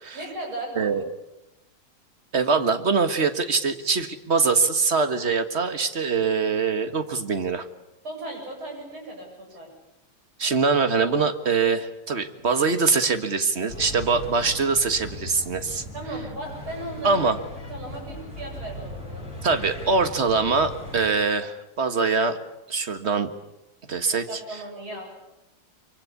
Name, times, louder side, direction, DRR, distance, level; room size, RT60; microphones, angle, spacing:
voice 1, 0.1-1.0 8.0-9.7 15.9-17.3 17.7-19.3 24.1-25.1, right 1 dB, 70° right, 1 dB, 8.8 m, -36 dB
voice 2, 2.3-7.6 10.4-15.8 17.0-17.4 19.4-22.4 22.7-23.3 23.9-24.4, right 4 dB, 35° right, 9 dB, 1.6 m, -23 dB
sound 1, 13.7-21.0, left 1 dB, 40° left, 6.8 m, -38 dB
25.0 x 24.5 x 8.5 m, 0.92 s
omnidirectional pair, 2.3 m